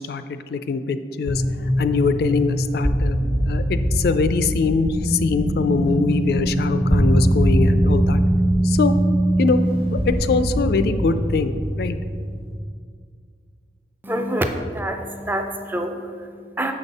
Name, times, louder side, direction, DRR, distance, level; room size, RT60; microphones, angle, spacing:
voice 1, 0.0-1.4 1.8-3.2 3.4-8.2 8.6-8.9 9.4-9.6 9.9-12.0, left 4 dB, 60° left, 11 dB, 0.3 m, -22 dB
sound 1, 1.3-12.6, equal, 35° right, 1.0 m, -21 dB
voice 2, 14.0-16.7, right 1 dB, 10° right, 5 dB, 0.4 m, -27 dB
6.7 x 5.3 x 4.1 m, 2.1 s
head